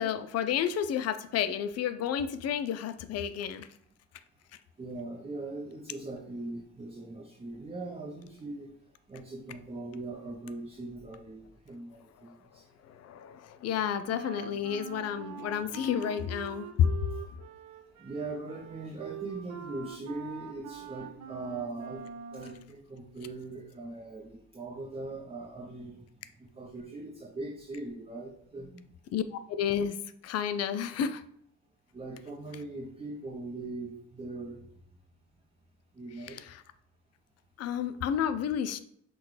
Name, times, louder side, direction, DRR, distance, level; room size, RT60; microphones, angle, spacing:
voice 1, 0.0-3.7 12.8-17.0 29.1-30.0 30.2-31.2 36.3-36.6 37.6-38.8, left 8 dB, 55° left, 11 dB, 0.4 m, -31 dB
voice 2, 4.8-8.7 9.1-12.7 18.0-26.0 26.4-28.8 31.9-34.6 35.9-36.4 38.0-38.1, right 2 dB, 20° right, -2 dB, 0.6 m, -41 dB
Wind instrument woodwind instrument, 14.1-22.7, right 8 dB, 65° right, 0.6 m, -44 dB
5.8 x 2.2 x 3.2 m, 0.69 s
cardioid pair, 90°, 30 cm